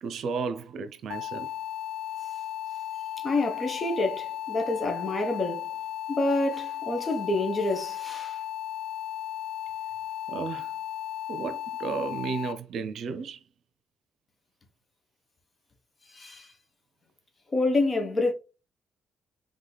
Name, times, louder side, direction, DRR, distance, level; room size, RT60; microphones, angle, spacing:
voice 1, 0.0-1.5 10.3-10.7 11.3-13.4, right 5 dB, 70° right, 0.6 m, -33 dB
sound 1, 1.1-12.5, left 11 dB, 90° left, 0.4 m, -35 dB
voice 2, 3.2-5.7 6.1-8.4 16.1-16.5 17.5-18.3, left 2 dB, 35° left, 1.2 m, -27 dB
4.1 x 3.6 x 3.4 m
cardioid pair, 90°, 0 cm